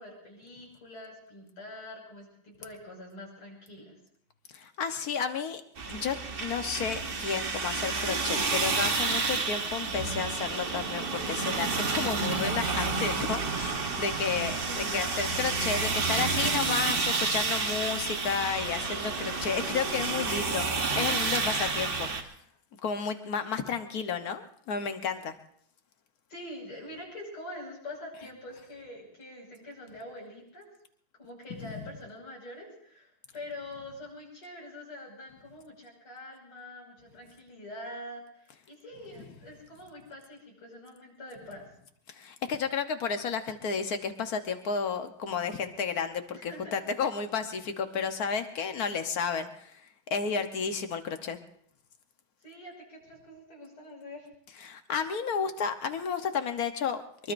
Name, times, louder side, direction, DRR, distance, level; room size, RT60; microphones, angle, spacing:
voice 1, 0.0-4.0 14.6-15.1 26.3-30.7 31.2-41.7 46.3-46.8 52.4-54.3, left 1 dB, 85° left, -2 dB, 6.8 m, -45 dB
voice 2, 4.5-5.6 5.9-22.3 22.8-25.3 31.6-31.7 42.1-49.7 50.1-51.4 54.6-57.3, left 6 dB, 50° left, 8 dB, 1.4 m, -32 dB
sound 1, 5.8-22.2, right 4 dB, 35° right, 1.0 m, -30 dB
23.5 x 23.0 x 2.6 m, 0.65 s
omnidirectional pair, 2.3 m